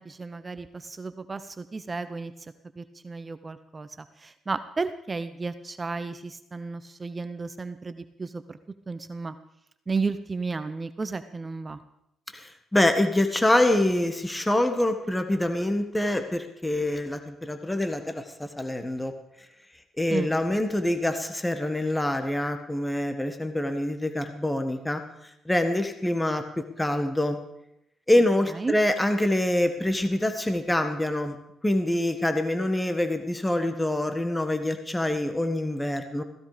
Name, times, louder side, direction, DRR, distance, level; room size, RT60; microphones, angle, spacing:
voice 1, 0.0-2.3 2.8-8.6 8.9-9.3 9.9-11.8 20.1-20.4 28.5-28.8, right 4 dB, 25° right, 11 dB, 0.9 m, -33 dB
voice 2, 12.3-19.1 20.0-25.0 25.5-26.5 26.8-27.4 28.1-31.4 31.6-36.2, left 1 dB, 10° left, 7 dB, 1.7 m, -25 dB
16.5 x 16.0 x 5.2 m, 0.79 s
cardioid pair, 90°, 0 cm